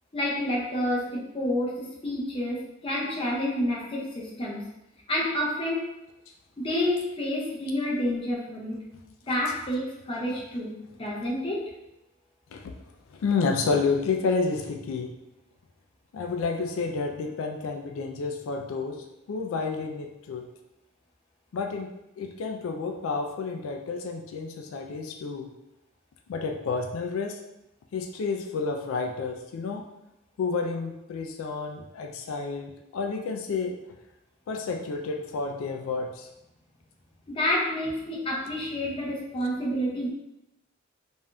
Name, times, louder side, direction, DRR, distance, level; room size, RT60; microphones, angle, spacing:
voice 1, 0.1-4.7 5.1-5.9 6.6-8.8 9.3-11.7 37.3-40.1, left 1 dB, 25° left, -4 dB, 0.6 m, -29 dB
voice 2, 13.1-15.1 16.1-20.4 21.5-25.5 26.3-27.4 27.9-29.8 30.4-33.8 34.5-36.3, left 4 dB, 85° left, 3 dB, 0.3 m, -30 dB
3.4 x 2.6 x 2.2 m, 0.90 s
head